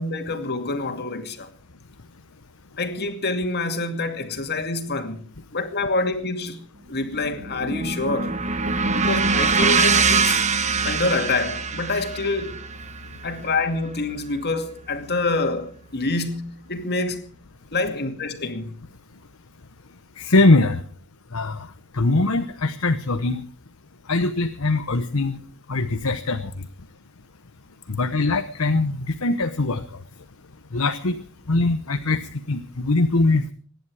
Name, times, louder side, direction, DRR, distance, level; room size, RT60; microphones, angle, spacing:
voice 1, 0.0-1.5 2.8-6.6 6.9-8.4 8.9-10.4 10.8-12.6 13.2-17.3 17.7-18.8, left 3 dB, 50° left, 2.4 m, -26 dB
sound 1, 6.9-15.2, right 4 dB, 35° right, 1.1 m, -24 dB
voice 2, 20.2-20.8 21.3-21.6 21.9-23.4 24.1-25.4 25.7-26.5 27.9-29.8 30.7-31.2 31.5-32.2 32.5-33.5, left 2 dB, 80° left, 1.1 m, -21 dB
25.5 x 10.5 x 4.9 m
head